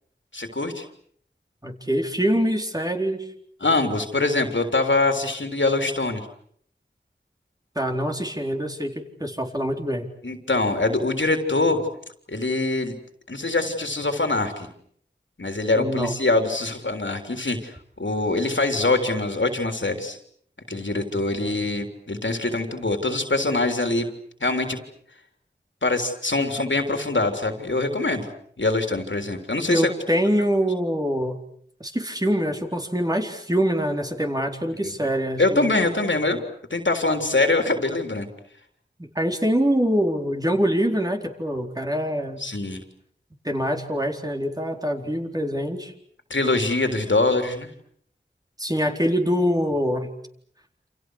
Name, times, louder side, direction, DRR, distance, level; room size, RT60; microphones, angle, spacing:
voice 1, 0.3-0.9 3.6-6.3 10.2-11.8 12.3-13.0 13.3-14.7 15.4-20.2 20.7-24.1 24.4-24.8 25.8-28.3 28.6-29.9 34.8-34.9 35.4-36.4 36.7-38.3 42.4-42.8 46.3-47.7, left 2 dB, 80° left, 5 dB, 3.6 m, -23 dB
voice 2, 1.6-3.3 7.8-10.1 15.7-16.1 29.7-31.4 31.8-35.7 39.0-42.4 43.4-45.9 48.6-50.1, equal, 20° right, 3 dB, 4.2 m, -24 dB
28.5 x 28.5 x 6.5 m, 0.65 s
wide cardioid pair, 45°, 19 cm